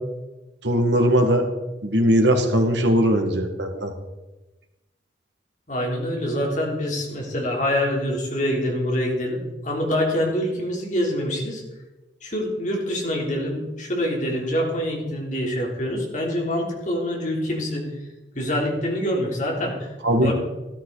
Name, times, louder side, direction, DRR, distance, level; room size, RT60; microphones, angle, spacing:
voice 1, 0.6-1.5 1.8-3.9 20.0-20.3, equal, 75° right, 4 dB, 2.1 m, -19 dB
voice 2, 5.7-9.4 9.6-11.6 12.2-17.9 18.4-19.9 20.2-20.3, equal, 45° left, -1 dB, 3.5 m, -25 dB
14.0 x 13.0 x 4.1 m, 1.1 s
head